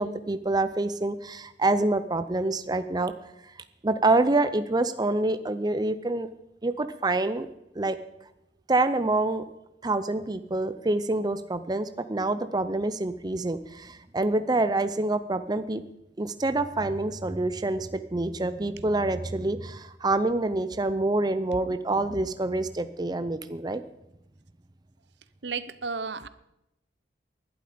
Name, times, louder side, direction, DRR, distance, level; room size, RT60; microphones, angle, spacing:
voice 1, 0.0-3.1 3.4-3.5 3.8-6.3 6.6-7.5 7.8-8.0 8.7-9.5 9.8-15.8 16.2-23.8, right 2 dB, 20° right, 11 dB, 0.6 m, -26 dB
voice 2, 25.4-26.3, right 5 dB, 70° right, 15 dB, 0.8 m, -33 dB
20.5 x 11.5 x 5.2 m, 0.87 s
head